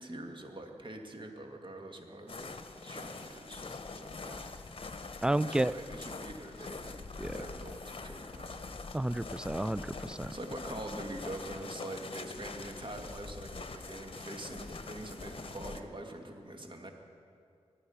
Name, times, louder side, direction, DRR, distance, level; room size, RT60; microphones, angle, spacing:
voice 1, 0.0-4.5 5.4-8.6 10.3-16.9, right 1 dB, 45° right, 3 dB, 2.1 m, -44 dB
persone che camminano sulla neve, 2.3-15.8, left 3 dB, 50° left, 1.1 m, -44 dB
voice 2, 5.2-5.7 7.2-7.4 8.9-10.3, right 1 dB, 5° right, 18 dB, 0.4 m, -31 dB
24.0 x 8.8 x 5.7 m, 2.3 s
cardioid pair, 45°, 12 cm